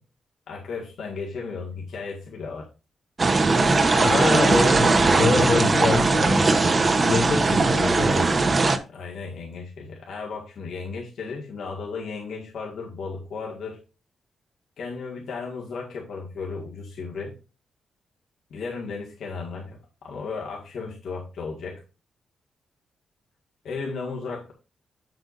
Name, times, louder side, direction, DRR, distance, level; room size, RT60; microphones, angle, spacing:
voice 1, 0.5-2.7 3.9-4.4 5.5-6.0 7.4-7.5 8.9-13.8 14.8-17.3 18.5-21.8 23.6-24.5, left 4 dB, 75° left, 0 dB, 1.8 m, -35 dB
sound 1, 3.2-8.8, right 3 dB, 30° right, 0.9 m, -19 dB
voice 2, 4.0-6.6 7.0-8.3, left 3 dB, 50° left, 1 dB, 2.9 m, -25 dB
7.9 x 7.8 x 2.6 m, 0.31 s
wide cardioid pair, 140°, 0 cm